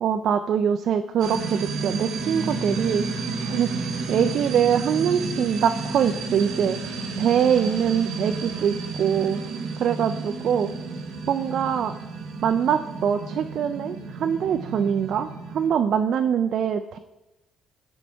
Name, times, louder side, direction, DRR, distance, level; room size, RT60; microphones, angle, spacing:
voice 1, 0.0-3.0 3.5-3.8 4.1-6.8 7.2-9.4 9.8-10.7 11.3-12.0 12.4-17.0, right 8 dB, 70° right, 8 dB, 0.3 m, -23 dB
sound 1, 1.2-15.7, right 4 dB, 85° right, 1.0 m, -32 dB
sound 2, 2.2-7.4, left 1 dB, 50° right, 1.2 m, -37 dB
7.3 x 4.5 x 5.4 m, 0.98 s
cardioid pair, 90°, 0 cm